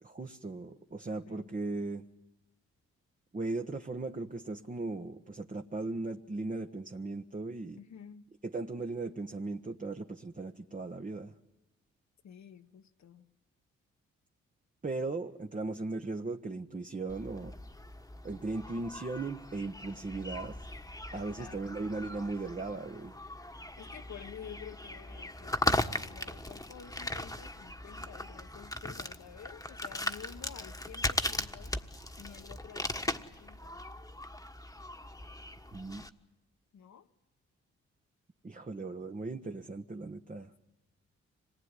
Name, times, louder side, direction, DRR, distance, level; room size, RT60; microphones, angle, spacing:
voice 1, 0.0-2.0 3.3-7.8 8.5-11.3 14.8-17.5 18.2-20.6 21.1-23.1 35.7-36.0 38.4-40.5, right 3 dB, 25° right, 1.2 m, -37 dB
voice 2, 1.1-1.5 7.8-8.3 12.2-13.3 21.1-21.7 23.8-33.8 36.7-37.1, left 8 dB, 70° left, 1.5 m, -51 dB
sound 1, 17.1-36.1, left 1 dB, 10° left, 1.5 m, -38 dB
25.5 x 19.5 x 9.8 m
supercardioid pair, 55°, 29 cm